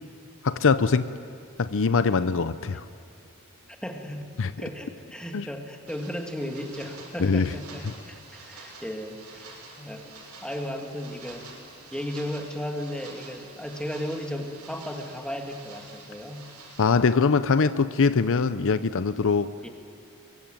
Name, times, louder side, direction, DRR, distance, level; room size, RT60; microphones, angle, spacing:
voice 1, 0.4-1.1 1.6-2.8 4.4-4.5 5.3-5.5 7.2-7.5 16.8-19.5, left 4 dB, 60° left, 13 dB, 0.6 m, -22 dB
voice 2, 3.7-11.5 11.9-16.5 19.6-19.7, equal, 5° left, 3 dB, 2.4 m, -35 dB
sound 1, 5.9-16.9, right 3 dB, 85° right, 6.7 m, -47 dB
23.5 x 23.0 x 9.2 m, 2.4 s
head